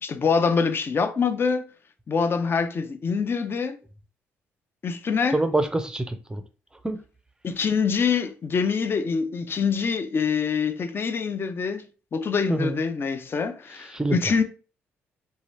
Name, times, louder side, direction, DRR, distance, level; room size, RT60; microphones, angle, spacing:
voice 1, 0.0-1.7 2.1-3.8 4.8-5.4 7.4-11.9 12.1-14.4, left 5 dB, 45° left, 0.5 m, -25 dB
voice 2, 5.3-6.4 6.8-7.0 12.5-12.8 13.7-14.3, right 2 dB, 15° right, 0.5 m, -26 dB
2.8 x 2.3 x 3.1 m
supercardioid pair, 60°, 6 cm